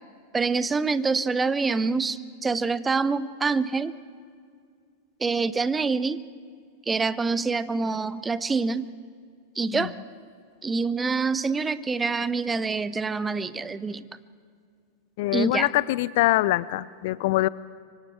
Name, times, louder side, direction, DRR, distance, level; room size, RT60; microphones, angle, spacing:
voice 1, 0.3-4.0 5.2-6.2 6.9-8.9 9.6-9.9 10.6-14.1 15.3-15.7, right 4 dB, 15° right, 16 dB, 0.6 m, -26 dB
voice 2, 15.2-17.5, left 17 dB, 50° left, 20 dB, 0.4 m, -24 dB
26.0 x 24.5 x 4.6 m, 2.2 s
figure-of-eight pair, 90°, 0 cm